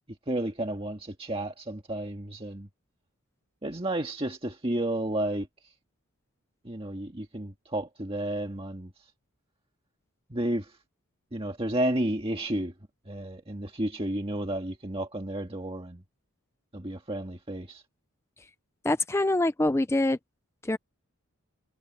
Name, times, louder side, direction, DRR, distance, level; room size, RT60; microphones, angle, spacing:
voice 1, 0.3-2.7 3.6-5.5 6.6-8.9 10.3-10.7 11.3-12.7 13.1-16.0 16.7-17.8, right 1 dB, 25° right, 1.7 m, -32 dB
voice 2, 18.8-20.2 20.6-20.8, left 2 dB, 10° left, 0.5 m, -25 dB
head